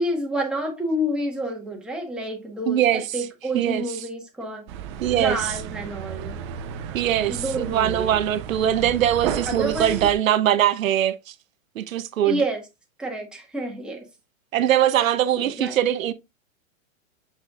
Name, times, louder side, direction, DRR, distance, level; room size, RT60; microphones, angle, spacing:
voice 1, 0.0-4.7 5.1-6.4 7.3-8.2 9.4-10.1 12.2-12.6 13.0-14.0 15.4-15.7, right 1 dB, ahead, 1.4 m, -29 dB
voice 2, 2.6-3.3 3.5-3.8 5.0-5.6 6.9-11.3 11.8-12.4 14.5-16.1, right 11 dB, 80° right, 0.8 m, -22 dB
sound 1, 4.7-10.1, right 8 dB, 25° right, 0.4 m, -33 dB
7.3 x 5.5 x 2.4 m
hypercardioid pair, 140°, 40 cm